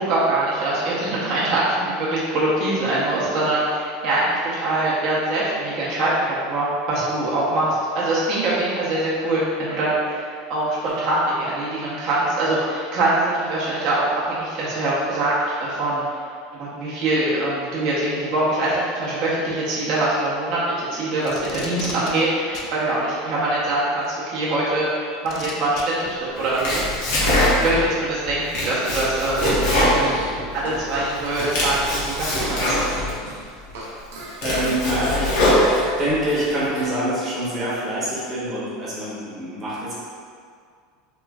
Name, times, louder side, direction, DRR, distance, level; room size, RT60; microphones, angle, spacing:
voice 1, 0.0-15.3 15.6-16.2 16.5-26.8 27.2-32.8, right 2 dB, 45° right, -7 dB, 0.6 m, -23 dB
Packing tape duct tape, 21.2-22.1 22.5-22.7 24.0-24.1 25.3-25.8 26.9-27.0, left 4 dB, 40° left, 0.3 m, -35 dB
Domestic sounds home sounds, 26.4-27.9 28.3-30.8 31.2-33.1 33.7-33.8 34.2-36.1, left 1 dB, 70° left, 0.9 m, -22 dB
Fart, 28.8-30.3 30.6-33.9 34.1-36.9, right 2 dB, 90° right, 0.5 m, -37 dB
voice 2, 34.4-35.3 36.0-39.9, right 1 dB, 20° right, -9 dB, 0.8 m, -25 dB
3.0 x 2.4 x 2.2 m, 2.2 s
supercardioid pair, 155°, 0 cm